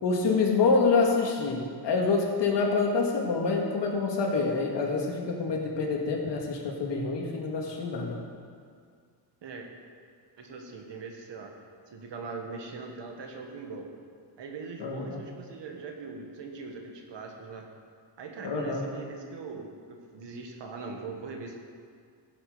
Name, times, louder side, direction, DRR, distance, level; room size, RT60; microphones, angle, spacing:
voice 1, 0.0-8.2 14.8-15.2 18.4-18.8, left 4 dB, 85° left, 0 dB, 2.1 m, -26 dB
voice 2, 10.4-11.5 11.9-13.9 14.4-17.7 18.2-21.6, right 4 dB, 90° right, 2 dB, 1.8 m, -41 dB
16.0 x 7.6 x 5.1 m, 2.1 s
wide cardioid pair, 135°, 41 cm